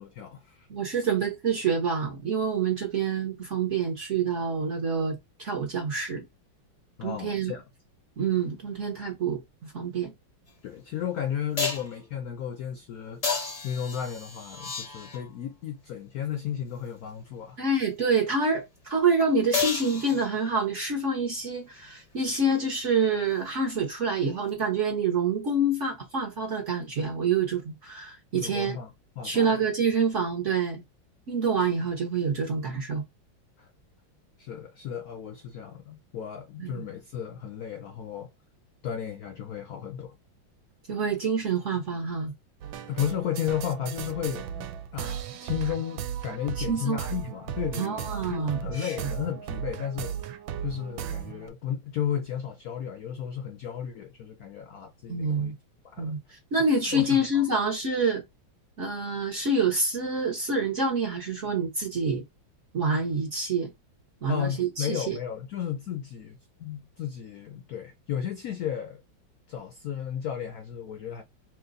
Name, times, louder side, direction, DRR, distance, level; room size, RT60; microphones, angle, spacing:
voice 1, 0.0-1.1 7.0-7.6 10.6-17.6 28.4-29.6 33.6-33.7 34.4-38.3 38.8-40.2 42.9-44.7 44.9-50.3 50.6-55.5 55.8-56.1 56.9-57.5 64.3-69.0 69.5-71.2, left 9 dB, 75° left, 0.8 m, -34 dB
voice 2, 0.7-6.2 7.0-7.6 8.2-10.1 17.6-28.8 29.2-30.8 31.3-33.0 36.6-36.8 40.9-42.3 46.7-47.0 47.8-48.9 55.1-55.5 56.0-56.2 56.5-58.2 58.8-62.2 62.7-63.7 64.2-65.2, right 3 dB, 50° right, 0.9 m, -27 dB
sound 1, 10.5-10.6 11.6-12.0 13.2-15.4 19.5-20.6 24.5-24.6, left 5 dB, 50° left, 0.4 m, -31 dB
sound 2, 42.6-51.5, right 9 dB, 80° right, 1.3 m, -36 dB
3.1 x 3.0 x 3.8 m
omnidirectional pair, 2.2 m